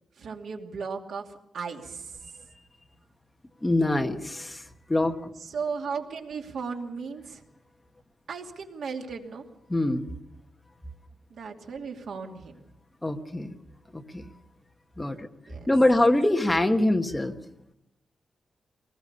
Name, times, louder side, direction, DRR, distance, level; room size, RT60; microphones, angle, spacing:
voice 1, 0.2-2.2 5.4-7.4 8.3-9.4 11.3-12.6 15.5-15.6, right 5 dB, 75° right, 2 dB, 2.6 m, -36 dB
voice 2, 3.6-5.2 9.7-10.1 13.0-13.5 13.9-14.3 15.0-15.3 15.7-17.3, left 1 dB, 10° left, 5 dB, 1.3 m, -24 dB
23.5 x 19.5 x 6.8 m, 0.85 s
wide cardioid pair, 180°, 0 cm